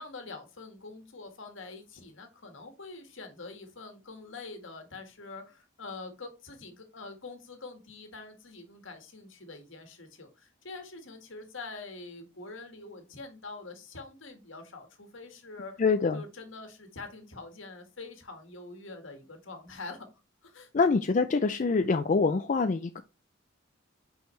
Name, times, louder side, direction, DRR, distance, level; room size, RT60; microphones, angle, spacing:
voice 1, 0.0-15.8 16.1-20.1 20.4-20.7, left 3 dB, 75° left, 1.7 m, -45 dB
voice 2, 15.8-16.2 20.7-23.0, left 4 dB, 40° left, 0.4 m, -25 dB
5.8 x 5.5 x 3.2 m
head